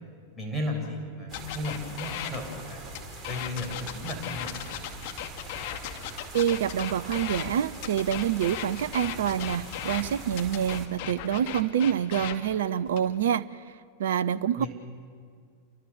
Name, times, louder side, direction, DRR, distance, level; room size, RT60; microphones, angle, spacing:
voice 1, 0.4-2.9 3.3-4.9 14.5-14.7, left 1 dB, 5° left, -2 dB, 7.2 m, -35 dB
sound 1, 1.3-2.4 2.9-7.5 7.8-10.0 10.3-12.4 12.9-13.2, left 12 dB, 50° left, 2.4 m, -36 dB
sound 2, 1.3-10.9, right 2 dB, 20° right, 3.7 m, -43 dB
voice 2, 6.3-14.6, right 9 dB, 60° right, 17 dB, 0.6 m, -27 dB
28.5 x 24.0 x 7.3 m, 2.1 s
figure-of-eight pair, 90°, 0 cm